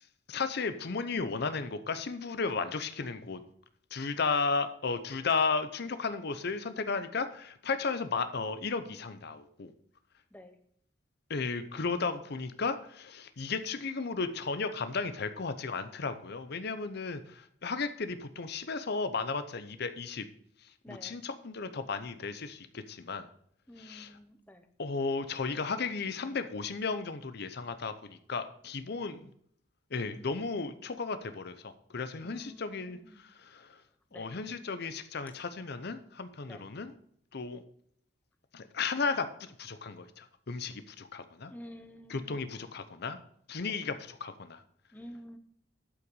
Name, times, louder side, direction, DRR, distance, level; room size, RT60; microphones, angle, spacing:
voice 1, 0.3-3.4 3.9-9.7 11.3-20.3 20.6-23.3 23.8-24.1 24.8-29.3 29.9-33.8 34.1-36.9 37.3-37.6 38.5-41.5 42.1-43.2 43.5-44.6, left 4 dB, 60° left, 11 dB, 0.7 m, -34 dB
voice 2, 20.8-21.2 23.7-24.7 32.2-33.2 34.1-34.3 36.5-36.7 41.5-42.5 43.7-43.8 44.9-45.4, equal, 10° left, 7 dB, 0.8 m, -50 dB
12.0 x 5.7 x 5.4 m, 0.65 s
head